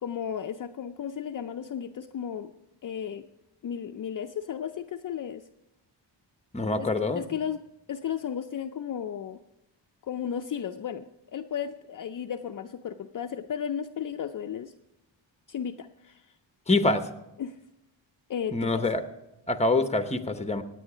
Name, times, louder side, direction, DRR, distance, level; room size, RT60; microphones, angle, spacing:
voice 1, 0.0-2.5 2.8-3.3 3.6-5.5 6.8-6.9 7.2-7.6 7.9-9.4 10.0-14.7 15.5-16.4 17.4-17.6 18.3-18.9, left 8 dB, 45° left, 7 dB, 0.5 m, -34 dB
voice 2, 6.5-7.2 16.7-17.0 18.5-19.0 19.5-20.6, left 2 dB, 15° left, 9 dB, 0.9 m, -25 dB
17.0 x 9.2 x 4.9 m, 0.92 s
cardioid pair, 100°, 45 cm